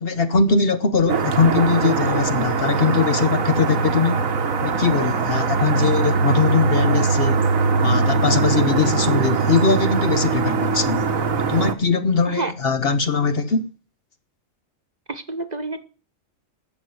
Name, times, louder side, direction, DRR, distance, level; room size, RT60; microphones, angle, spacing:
voice 1, 0.0-4.3 4.6-7.4 7.8-11.0 11.5-13.7, left 4 dB, 50° left, 1.1 m, -21 dB
sound 1, 1.1-11.7, right 5 dB, 90° right, 1.7 m, -21 dB
voice 2, 15.1-15.8, right 2 dB, 35° right, 1.2 m, -28 dB
11.0 x 7.8 x 9.4 m
omnidirectional pair, 1.4 m